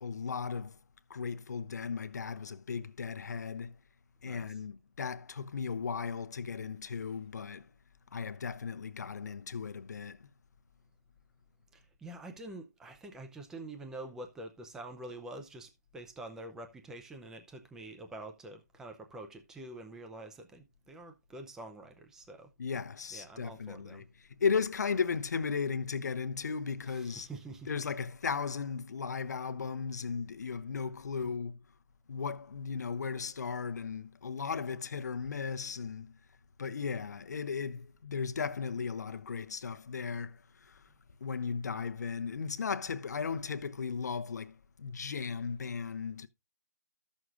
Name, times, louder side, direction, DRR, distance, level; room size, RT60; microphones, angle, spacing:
voice 1, 0.0-0.8 1.1-3.8 4.2-7.7 8.1-10.3 22.6-24.1 24.4-27.3 27.7-31.6 32.1-36.2 36.6-40.8 41.2-46.3, left 5 dB, 65° left, 0.8 m, -36 dB
voice 2, 11.7-22.5 23.1-24.1 26.9-27.7, right 2 dB, 5° right, 0.6 m, -46 dB
14.0 x 6.3 x 2.5 m
hypercardioid pair, 160°, 10 cm